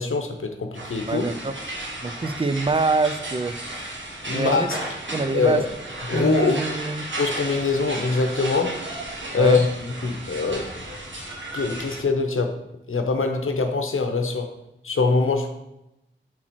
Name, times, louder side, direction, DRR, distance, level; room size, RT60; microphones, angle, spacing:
voice 1, 0.0-1.2 4.2-4.8 5.3-5.6 6.1-6.6 7.2-8.8 9.3-10.7 11.5-12.5 12.9-14.5 14.8-15.5, left 4 dB, 85° left, 5 dB, 0.8 m, -23 dB
sound 1, 0.7-12.0, right 1 dB, 70° right, 1.4 m, -34 dB
voice 2, 1.1-1.5 2.0-3.6 4.3-4.7 5.1-5.6 6.1-7.0 9.3-9.6, right 3 dB, 25° right, 10 dB, 0.4 m, -25 dB
6.1 x 4.4 x 4.3 m, 0.89 s
wide cardioid pair, 65°, 21 cm